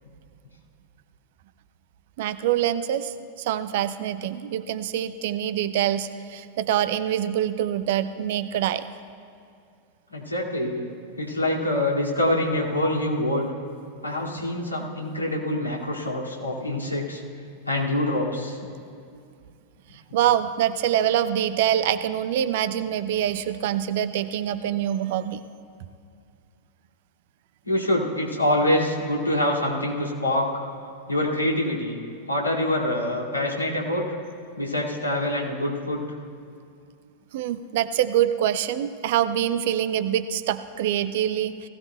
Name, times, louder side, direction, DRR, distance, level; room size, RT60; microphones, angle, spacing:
voice 1, 2.2-8.9 20.1-25.4 37.3-41.7, right 11 dB, 55° right, 12 dB, 0.5 m, -25 dB
voice 2, 10.1-10.8 11.2-13.5 14.0-17.2 17.7-18.6 27.7-30.5 31.1-32.0 32.3-34.1 34.6-36.0, left 1 dB, 85° left, -4 dB, 2.2 m, -25 dB
19.0 x 16.0 x 2.2 m, 2.4 s
figure-of-eight pair, 90°, 0 cm